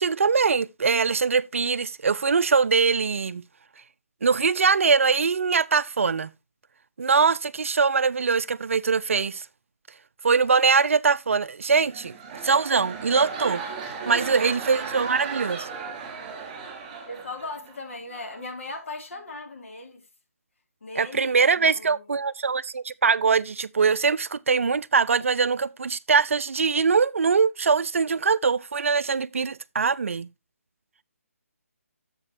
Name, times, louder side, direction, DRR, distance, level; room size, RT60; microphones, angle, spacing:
voice 1, 0.0-3.4 4.2-6.3 7.0-9.4 10.2-12.2 12.4-13.6 14.1-15.7 21.0-30.3, right 5 dB, 60° right, 0.5 m, -22 dB
sound 1, 11.8-17.7 18.1-18.4, right 5 dB, 25° right, 3.4 m, -36 dB
voice 2, 14.0-14.5 17.1-20.1 20.8-22.1, left 2 dB, 60° left, 2.6 m, -38 dB
10.5 x 7.4 x 2.6 m
figure-of-eight pair, 145°, 8 cm